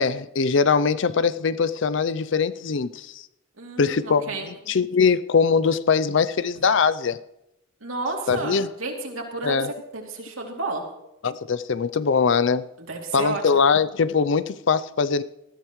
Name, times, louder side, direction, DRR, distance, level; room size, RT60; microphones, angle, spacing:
voice 1, 0.0-3.2 3.8-7.2 8.3-8.7 9.4-9.7 11.2-12.6 13.1-15.2, left 5 dB, 60° left, 0.5 m, -22 dB
voice 2, 3.6-4.5 7.8-9.6 9.9-10.8 12.8-13.4, right 3 dB, 80° right, 2.9 m, -31 dB
19.5 x 14.0 x 3.1 m
head